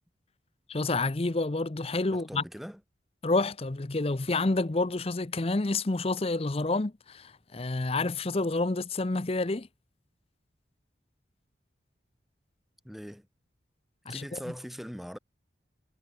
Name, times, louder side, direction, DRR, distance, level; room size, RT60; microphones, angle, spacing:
voice 1, 0.7-2.4 3.2-9.7 14.1-14.4, left 2 dB, 30° left, 0.7 m, -29 dB
voice 2, 2.1-2.8 12.8-13.3 14.1-15.2, equal, ahead, 5.3 m, -41 dB
head